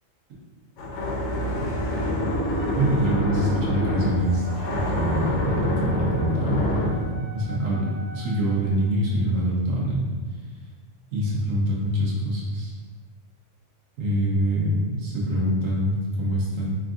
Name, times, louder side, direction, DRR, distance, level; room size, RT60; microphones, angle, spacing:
sound 1, 0.8-7.1, left 1 dB, 70° left, 0.9 m, -26 dB
Wind instrument woodwind instrument, 2.6-8.6, right 1 dB, 55° right, 1.0 m, -44 dB
voice 1, 2.7-4.5 4.7-10.1 11.1-12.7 14.0-16.8, right 1 dB, 80° right, -4 dB, 1.3 m, -25 dB
3.9 x 2.4 x 3.7 m, 1.4 s
omnidirectional pair, 1.3 m